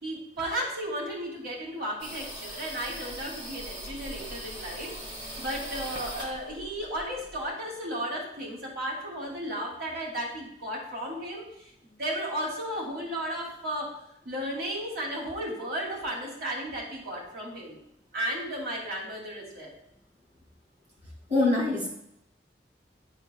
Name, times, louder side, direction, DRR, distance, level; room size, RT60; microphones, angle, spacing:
voice 1, 0.0-4.9 5.2-11.7 12.0-13.9 14.2-17.8 18.1-19.7, equal, 60° right, -4 dB, 2.4 m, -34 dB
sound 1, 2.0-7.5, equal, 25° right, 1.0 m, -40 dB
voice 2, 21.3-21.9, left 2 dB, 40° right, -3 dB, 2.1 m, -24 dB
9.7 x 4.4 x 2.2 m, 0.78 s
head